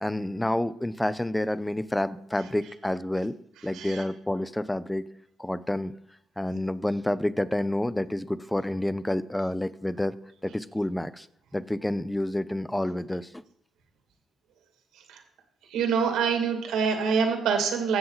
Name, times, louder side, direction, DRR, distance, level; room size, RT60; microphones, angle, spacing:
voice 1, 0.0-3.4 3.6-5.1 5.4-5.9 6.4-10.2 10.4-11.3 11.5-13.4, left 1 dB, 10° left, 16 dB, 0.5 m, -29 dB
voice 2, 3.7-4.0 15.1-15.2 15.7-18.0, right 6 dB, 90° right, 4 dB, 2.2 m, -25 dB
14.5 x 7.6 x 4.0 m, 0.75 s
cardioid pair, 90°, 0 cm